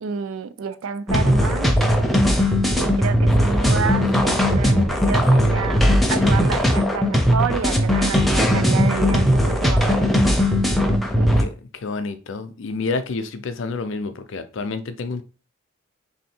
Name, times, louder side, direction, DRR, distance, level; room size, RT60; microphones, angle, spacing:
voice 1, 0.0-1.7 2.8-10.2 11.2-11.3, right 6 dB, 85° right, 0.4 m, -29 dB
sound 1, 1.1-11.4, equal, ahead, 0.5 m, -18 dB
voice 2, 11.4-15.2, left 3 dB, 60° left, 0.5 m, -29 dB
3.5 x 2.7 x 4.3 m
head